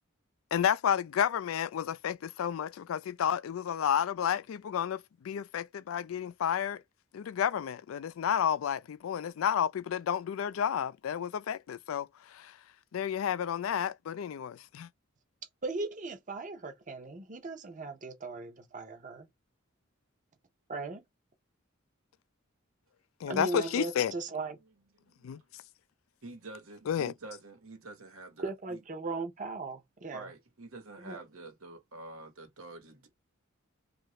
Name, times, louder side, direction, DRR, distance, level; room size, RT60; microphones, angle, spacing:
voice 1, 0.5-6.8 7.1-12.6 12.9-14.9 23.2-24.1 25.2-25.4 26.9-27.1, left 8 dB, 75° left, 0.3 m, -31 dB
voice 2, 15.6-19.3 20.7-21.0 23.3-24.6 28.4-30.3 31.0-31.2, right 3 dB, 40° right, 0.7 m, -38 dB
voice 3, 25.1-25.4 26.2-28.8 30.1-33.1, right 2 dB, 90° right, 1.1 m, -47 dB
2.8 x 2.4 x 3.0 m
head